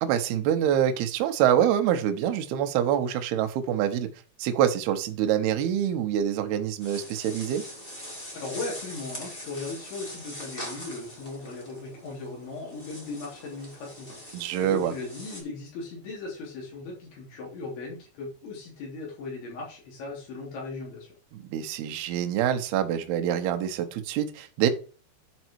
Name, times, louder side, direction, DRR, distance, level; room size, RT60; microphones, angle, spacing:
voice 1, 0.0-4.1 4.4-7.6 14.3-14.9 21.5-24.7, right 10 dB, 75° right, 6 dB, 2.4 m, -25 dB
sound 1, 6.8-15.4, equal, 40° left, 0.8 m, -42 dB
voice 2, 8.3-21.1, left 3 dB, 70° left, -3 dB, 5.6 m, -38 dB
10.5 x 5.4 x 4.6 m, 0.37 s
omnidirectional pair, 5.6 m